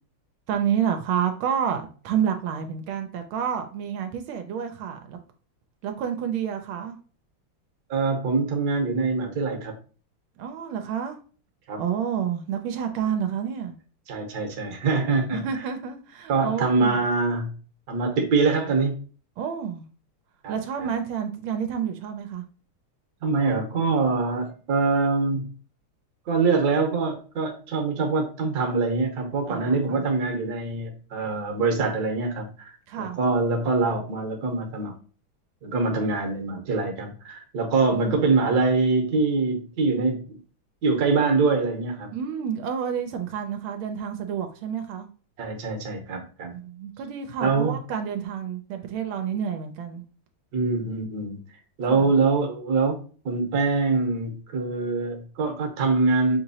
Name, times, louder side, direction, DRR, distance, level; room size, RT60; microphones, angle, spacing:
voice 1, 0.5-5.2 5.8-7.0 10.4-11.2 11.8-13.8 15.3-17.0 19.4-19.8 20.5-22.4 29.5-30.1 32.9-33.2 37.9-38.3 42.1-45.1 46.5-50.0 51.9-52.1, right 8 dB, 85° right, 6 dB, 1.4 m, -29 dB
voice 2, 7.9-9.7 11.7-11.8 14.1-15.4 16.3-17.6 17.9-18.9 20.4-20.5 20.8-20.9 23.2-25.5 26.3-35.0 35.6-40.3 40.8-42.1 45.4-46.5 47.4-47.8 50.5-51.4 51.8-53.0 53.2-56.4, right 3 dB, 55° right, 4 dB, 1.3 m, -24 dB
6.1 x 2.9 x 2.7 m, 0.39 s
omnidirectional pair, 2.2 m